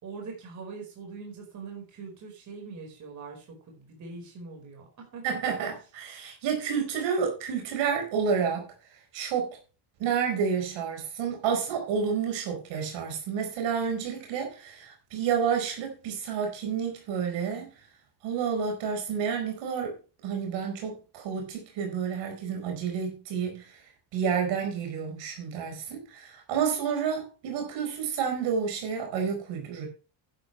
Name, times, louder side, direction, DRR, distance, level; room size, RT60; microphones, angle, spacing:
voice 1, 0.0-5.4, right 4 dB, 40° right, 4.8 m, -42 dB
voice 2, 5.2-8.6 9.1-9.6 10.0-17.7 18.2-19.9 20.2-23.8 24.1-29.9, right 6 dB, 70° right, 4.8 m, -30 dB
11.5 x 10.5 x 3.2 m
cardioid pair, 180°, 46 cm